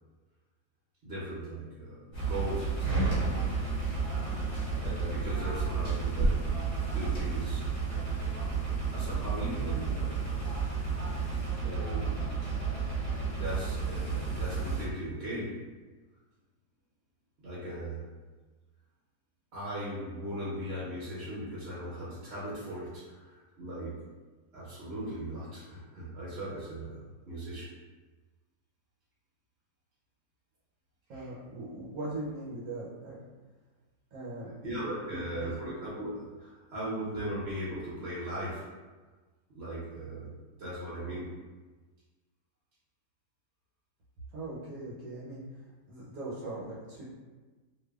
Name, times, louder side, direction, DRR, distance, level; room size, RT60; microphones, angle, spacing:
voice 1, 1.0-3.1 3.8-4.0 4.8-6.4 6.9-7.6 8.2-8.4 8.9-10.4 11.6-12.3 13.4-15.5 17.4-18.1 19.5-24.0 24.5-27.7 31.1-31.3 34.6-38.6 39.5-41.3, right 1 dB, 55° right, -9 dB, 0.8 m, -38 dB
sound 1, 2.1-14.9, right 4 dB, 45° left, 1.0 m, -31 dB
voice 2, 31.1-33.2 34.1-34.5 35.1-35.5 44.3-47.0, right 2 dB, 70° right, -8 dB, 1.1 m, -40 dB
2.6 x 2.2 x 2.3 m, 1.3 s
omnidirectional pair, 1.6 m